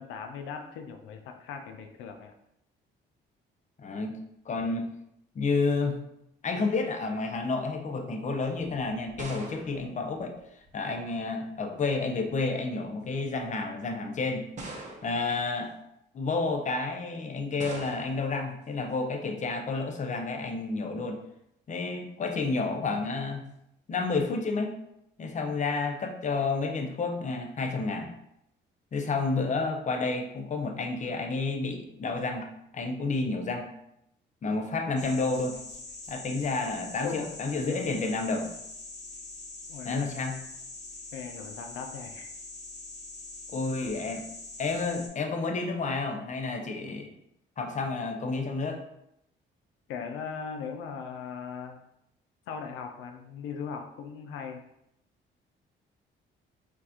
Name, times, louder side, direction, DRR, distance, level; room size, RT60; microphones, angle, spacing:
voice 1, 0.0-2.3 37.0-37.3 39.7-40.0 41.1-42.3 49.9-51.8 52.5-54.6, left 6 dB, 90° left, 5 dB, 0.4 m, -38 dB
voice 2, 3.8-4.2 4.5-4.9 5.3-6.0 6.4-10.4 10.7-14.4 15.0-15.7 16.1-21.2 21.7-23.4 23.9-24.7 25.2-28.1 28.9-32.5 32.7-33.7 34.4-35.6 36.1-38.5 39.8-40.3 43.5-44.2 44.6-47.1 47.6-48.8, left 3 dB, 40° left, 4 dB, 0.6 m, -30 dB
sound 1, 8.6-10.9 12.0-12.4 13.2-13.3 14.6-15.4 17.6-18.3, right 2 dB, 40° right, 0.8 m, -43 dB
sound 2, 35.0-45.1, left 2 dB, 60° left, 1.3 m, -43 dB
4.4 x 2.5 x 2.8 m, 0.79 s
cardioid pair, 90°, 20 cm